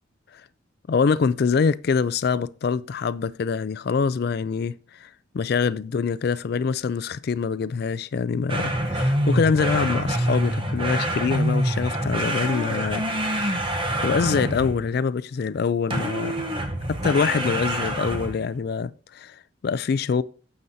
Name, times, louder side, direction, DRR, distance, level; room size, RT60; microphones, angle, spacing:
voice 1, 0.9-5.1 5.3-16.5 16.9-20.2, left 5 dB, 50° left, 0.3 m, -25 dB
sound 1, 8.5-14.9 15.9-18.5, right 1 dB, 25° right, 0.8 m, -26 dB
9.3 x 7.7 x 2.7 m
head